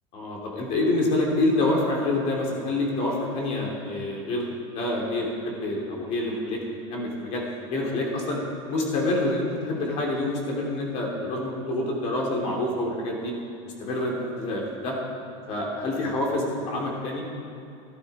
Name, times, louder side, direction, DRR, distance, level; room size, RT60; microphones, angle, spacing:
voice 1, 0.1-6.6 6.9-7.4 7.7-8.4 8.7-13.3 13.6-15.0 15.5-17.2, left 2 dB, 45° left, -1 dB, 2.8 m, -27 dB
14.0 x 12.0 x 4.2 m, 2.5 s
supercardioid pair, 155°, 15 cm